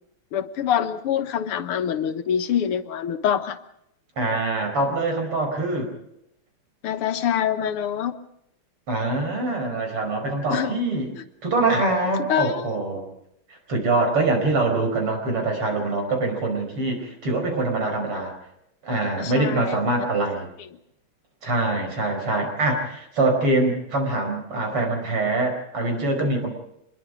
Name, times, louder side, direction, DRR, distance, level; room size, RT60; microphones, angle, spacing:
voice 1, 0.3-3.6 6.8-8.2 10.5-10.7 12.3-13.0 19.2-19.8, left 9 dB, 90° left, 9 dB, 2.1 m, -25 dB
voice 2, 4.2-5.9 8.9-11.1 11.4-13.1 13.7-18.3 18.8-20.5 21.4-26.5, right 2 dB, 85° right, 4 dB, 5.8 m, -24 dB
25.5 x 21.5 x 5.1 m, 0.77 s
omnidirectional pair, 2.4 m